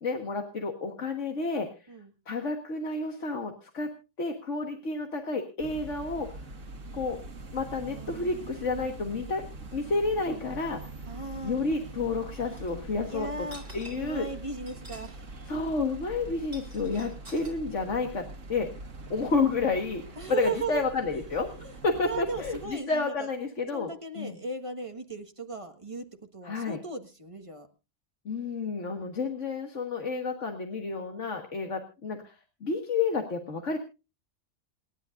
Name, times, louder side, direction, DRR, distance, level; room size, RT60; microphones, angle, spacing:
voice 1, 0.0-1.9 2.3-3.9 4.2-6.4 6.9-7.2 7.5-9.4 9.7-10.8 11.4-13.5 13.7-14.3 15.5-18.7 19.1-21.5 21.8-23.9 24.2-24.4 26.4-26.8 28.3-32.4 32.6-33.8, left 3 dB, 75° left, 4 dB, 1.9 m, -30 dB
sound 1, 5.6-22.7, right 2 dB, 85° right, 2.0 m, -43 dB
voice 2, 7.9-8.2 11.1-11.6 13.1-13.6 13.9-15.3 20.2-20.8 21.6-21.7 22.0-23.3 23.7-26.0 26.3-27.7, right 3 dB, 25° right, 5 dB, 1.6 m, -37 dB
sound 2, 12.5-12.7 13.4-14.2 14.6-15.2 15.4-15.5 16.3-17.5, right 1 dB, 55° right, 4.0 m, -48 dB
28.0 x 11.0 x 2.5 m, 0.30 s
omnidirectional pair, 1.3 m